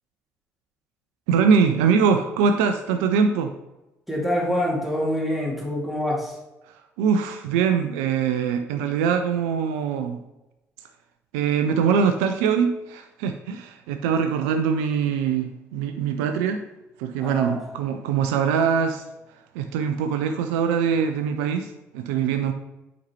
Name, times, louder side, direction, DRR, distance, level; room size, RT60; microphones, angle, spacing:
voice 1, 1.3-3.5 6.7-10.2 11.3-16.6 17.0-19.1 19.5-22.5, right 6 dB, 65° right, 7 dB, 0.4 m, -23 dB
voice 2, 4.1-6.3 17.2-17.6, equal, ahead, -3 dB, 2.2 m, -25 dB
7.1 x 5.1 x 3.0 m, 0.97 s
figure-of-eight pair, 45°, 8 cm